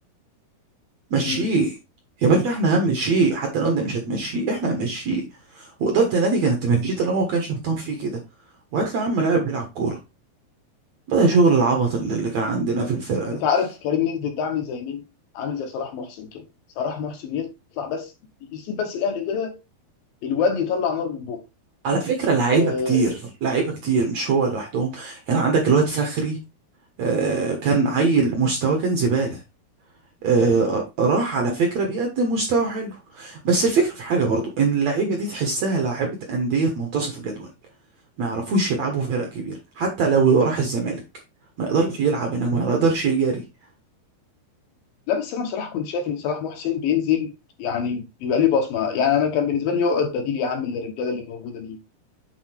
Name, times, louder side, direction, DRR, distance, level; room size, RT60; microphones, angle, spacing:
voice 1, 1.1-1.8 2.2-5.3 5.6-8.2 8.7-10.0 11.1-13.4 21.8-26.4 27.0-29.4 30.2-37.5 38.2-41.0 41.6-43.4, right 4 dB, 60° right, 2.0 m, -22 dB
voice 2, 13.4-15.0 15.3-16.4 16.8-17.5 17.8-18.1 18.4-19.6 20.2-21.4 22.5-23.1 27.8-28.1 30.3-30.8 45.1-47.3 47.6-51.8, left 7 dB, 70° left, 2.6 m, -25 dB
8.2 x 4.2 x 4.4 m
omnidirectional pair, 4.6 m